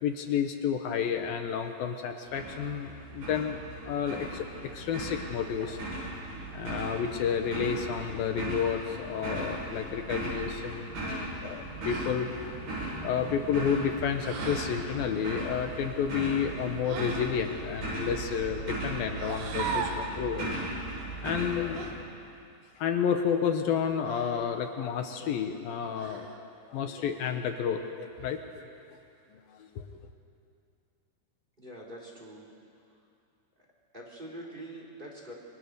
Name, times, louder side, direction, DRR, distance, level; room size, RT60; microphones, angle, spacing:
voice 1, 0.0-5.8 6.5-12.6 13.0-20.5 21.2-22.1 22.8-26.3 26.7-28.6 29.3-29.9, left 7 dB, 70° left, 6 dB, 2.6 m, -31 dB
sound 1, 2.3-21.9, right 1 dB, 50° right, 9.7 m, -37 dB
sound 2, 11.8-12.2 14.2-14.8 16.8-17.4 19.2-20.1 21.8-22.0 24.0-24.5 25.9-26.4, right 6 dB, 75° right, 3.6 m, -38 dB
voice 2, 31.6-32.4 33.9-35.3, right 1 dB, 10° right, -1 dB, 3.4 m, -44 dB
28.5 x 24.5 x 6.8 m, 2.5 s
omnidirectional pair, 5.0 m